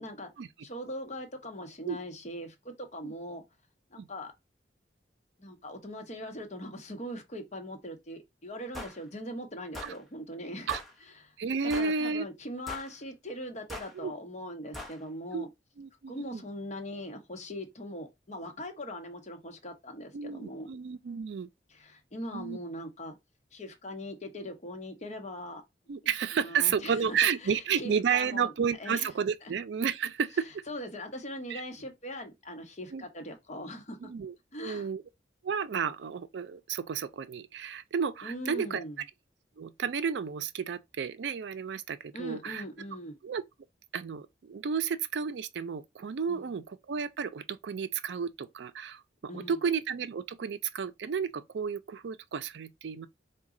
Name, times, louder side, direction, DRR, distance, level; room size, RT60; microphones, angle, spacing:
voice 1, 0.6-3.4 3.9-4.3 5.4-10.7 11.2-11.3 11.6-15.5 16.1-20.7 21.7-23.2 23.5-25.6 26.3-29.1 29.4-29.5 30.3-34.0 34.5-34.9 38.2-39.0 42.1-43.2 46.3-46.5 49.3-49.6, left 1 dB, 40° left, 0.9 m, -41 dB
sound 1, 8.7-9.0 9.7-10.0 10.7-10.9 11.7-12.0 12.7-12.9 13.7-13.9 14.7-15.0, left 1 dB, ahead, 0.7 m, -41 dB
voice 2, 11.4-12.3 14.0-14.1 15.3-15.4 15.8-16.4 20.1-21.5 22.3-22.6 25.9-30.5 31.5-31.6 32.9-33.0 34.0-34.3 34.6-35.0 35.4-38.8 39.6-42.6 43.2-43.4 43.9-49.0 49.3-53.1, right 6 dB, 75° right, 0.4 m, -32 dB
4.0 x 2.2 x 3.6 m
head